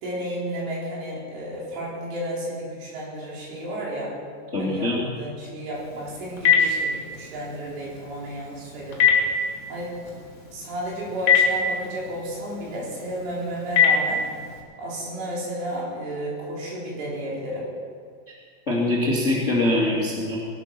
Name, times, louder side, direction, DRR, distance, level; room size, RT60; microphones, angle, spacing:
voice 1, 0.0-4.1 4.6-9.1 9.7-9.9 10.5-14.2 14.8-17.7, right 1 dB, 75° right, -5 dB, 6.5 m, -32 dB
voice 2, 4.5-5.0 18.7-20.4, left 1 dB, 25° left, -5 dB, 1.6 m, -23 dB
Telephone, 5.7-14.6, left 6 dB, 45° left, 3.3 m, -25 dB
19.0 x 12.0 x 6.0 m, 2.1 s
omnidirectional pair, 5.7 m